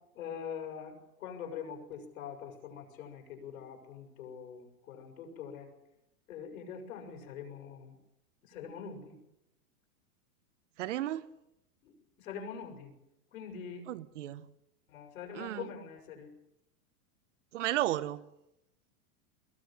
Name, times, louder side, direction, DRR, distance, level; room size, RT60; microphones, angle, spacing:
voice 1, 0.1-5.7 6.3-7.9 8.4-9.2 11.8-13.0 13.3-13.9 14.9-16.4, left 7 dB, 65° left, 3 dB, 6.6 m, -44 dB
voice 2, 10.8-11.3 13.8-14.5 15.3-15.7 17.5-18.3, right 13 dB, 55° right, 13 dB, 1.1 m, -34 dB
22.0 x 19.5 x 7.5 m, 0.85 s
supercardioid pair, 170°, 44 cm